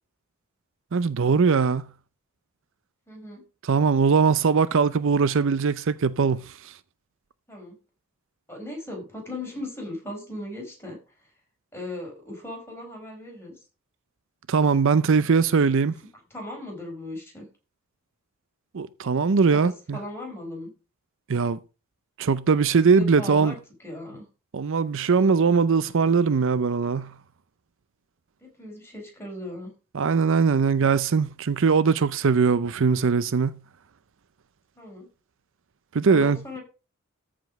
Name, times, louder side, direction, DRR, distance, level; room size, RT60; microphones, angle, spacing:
voice 1, 0.9-1.8 3.6-6.5 14.5-16.0 18.7-20.0 21.3-21.6 22.2-23.5 24.5-27.1 29.9-33.5 35.9-36.4, right 5 dB, 60° right, 0.5 m, -21 dB
voice 2, 3.1-3.4 7.5-7.8 8.5-11.0 11.7-13.6 16.3-17.5 19.5-20.7 22.9-24.3 28.4-29.7 34.8-35.1 36.0-36.6, left 1 dB, 10° left, 4.8 m, -37 dB
13.5 x 5.1 x 5.2 m
head